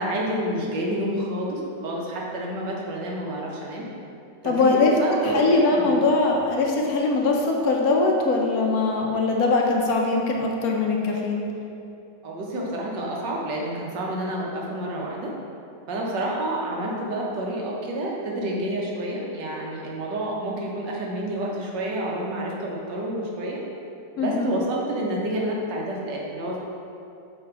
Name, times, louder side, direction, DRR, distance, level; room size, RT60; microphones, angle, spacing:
voice 1, 0.0-3.9 4.4-5.4 5.8-5.9 12.2-15.3 15.9-23.6 24.2-26.6, right 1 dB, 85° right, -2 dB, 1.7 m, -29 dB
voice 2, 4.4-4.9 5.2-11.4 24.2-24.5, left 3 dB, 65° left, 0 dB, 1.1 m, -21 dB
7.6 x 3.4 x 4.6 m, 2.7 s
omnidirectional pair, 1.9 m